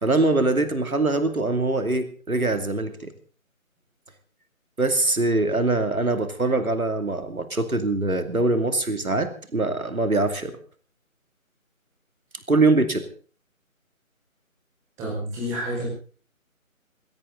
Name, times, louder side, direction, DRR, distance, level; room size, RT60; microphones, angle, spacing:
voice 1, 0.0-3.1 4.8-10.6 12.5-13.1, right 2 dB, 80° right, 9 dB, 2.7 m, -23 dB
voice 2, 15.0-15.9, equal, 5° right, -4 dB, 5.3 m, -29 dB
21.0 x 17.5 x 3.9 m, 0.40 s
figure-of-eight pair, 160°, 42 cm